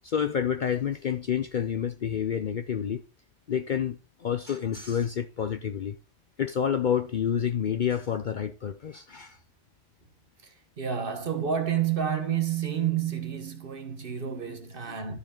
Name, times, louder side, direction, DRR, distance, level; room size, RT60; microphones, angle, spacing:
voice 1, 0.0-3.0 3.5-6.0 6.4-9.4 14.9-15.0, left 8 dB, 55° left, 0.6 m, -29 dB
voice 2, 10.8-15.2, right 8 dB, 50° right, 1.3 m, -29 dB
13.0 x 4.7 x 3.7 m
omnidirectional pair, 1.2 m